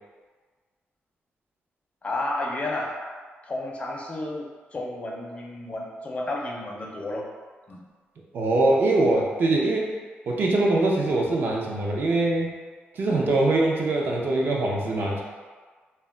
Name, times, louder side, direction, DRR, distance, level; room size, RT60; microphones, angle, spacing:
voice 1, 2.0-3.0 3.4-7.3 7.7-7.8, left 2 dB, 30° left, -1 dB, 0.4 m, -32 dB
voice 2, 8.3-9.9 10.3-12.5 12.9-15.2, right 2 dB, 55° right, -2 dB, 0.5 m, -23 dB
2.2 x 2.1 x 3.6 m, 1.5 s
cardioid pair, 125°, 4 cm